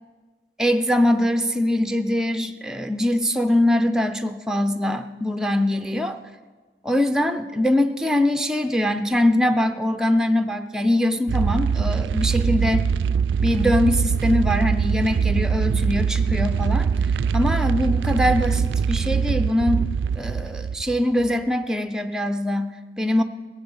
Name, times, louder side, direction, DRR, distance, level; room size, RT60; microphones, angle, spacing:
voice 1, 0.6-6.2 6.8-12.8 13.4-16.9 17.3-19.9 20.2-23.2, left 1 dB, 5° right, 7 dB, 0.5 m, -22 dB
sound 1, 11.3-21.3, right 6 dB, 75° right, 0.3 m, -22 dB
17.0 x 8.1 x 7.1 m, 1.4 s
head